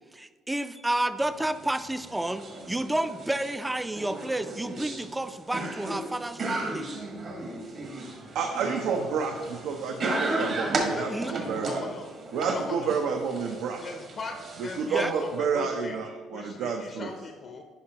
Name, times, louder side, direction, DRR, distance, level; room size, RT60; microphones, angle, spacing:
voice 1, 0.1-6.9 11.1-11.3 14.9-15.1, right 1 dB, 10° right, 12 dB, 0.3 m, -30 dB
sound 1, 1.2-15.4, right 2 dB, 50° right, 1.3 m, -35 dB
voice 2, 8.3-11.8 12.3-13.9 14.8-17.1, right 5 dB, 75° right, 3 dB, 0.6 m, -30 dB
voice 3, 10.1-12.1 12.5-12.9 13.8-16.0 16.3-17.6, left 4 dB, 45° left, 4 dB, 0.5 m, -39 dB
10.0 x 5.2 x 2.9 m, 1.5 s
cardioid pair, 110°, 0 cm